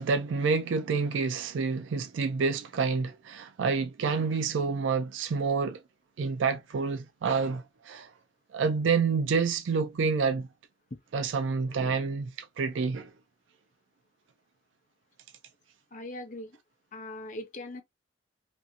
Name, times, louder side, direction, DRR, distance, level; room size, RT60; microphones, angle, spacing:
voice 1, 0.0-5.8 6.2-8.1 8.5-10.5 11.1-12.3 12.6-13.1, right 5 dB, 85° right, 0.4 m, -28 dB
voice 2, 15.9-16.6 16.9-17.8, left 1 dB, 40° left, 0.6 m, -40 dB
2.6 x 2.5 x 2.6 m
head